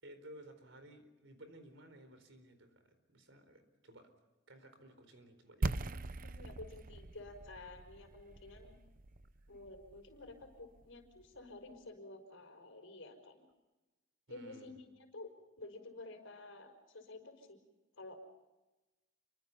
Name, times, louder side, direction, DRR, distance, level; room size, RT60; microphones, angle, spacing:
voice 1, 0.0-4.1 4.5-6.4 14.3-14.7, right 1 dB, 65° right, 9 dB, 4.4 m, -57 dB
sound 1, 5.6-11.4, right 2 dB, 40° right, 0.8 m, -42 dB
voice 2, 6.2-8.8 9.5-13.5 14.3-15.3 15.6-17.6 17.9-18.3, left 2 dB, 70° left, 5 dB, 5.5 m, -51 dB
29.0 x 24.5 x 5.5 m, 1.1 s
head